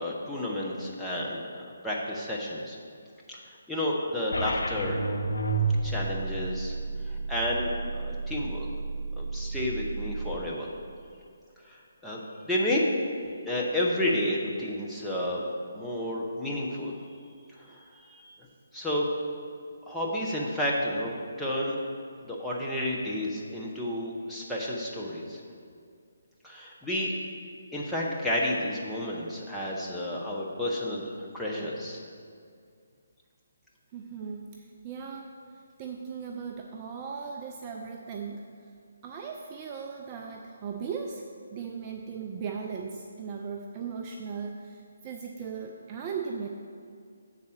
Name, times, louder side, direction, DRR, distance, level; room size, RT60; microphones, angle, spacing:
voice 1, 0.0-1.4 1.8-2.8 3.3-3.4 3.7-5.0 5.8-6.7 7.1-8.7 9.2-10.7 11.6-12.9 13.5-15.4 15.7-17.0 17.6-18.2 18.7-19.1 19.9-21.8 22.2-25.4 26.4-27.1 27.7-32.0, left 1 dB, 5° left, -5 dB, 0.9 m, -31 dB
sound 1, 4.3-10.3, right 3 dB, 70° left, 0.8 m, -31 dB
voice 2, 33.9-38.7 39.0-41.2 41.5-46.5, right 6 dB, 25° right, 1 dB, 0.4 m, -38 dB
6.9 x 4.1 x 6.5 m, 2.2 s
figure-of-eight pair, 145°, 0 cm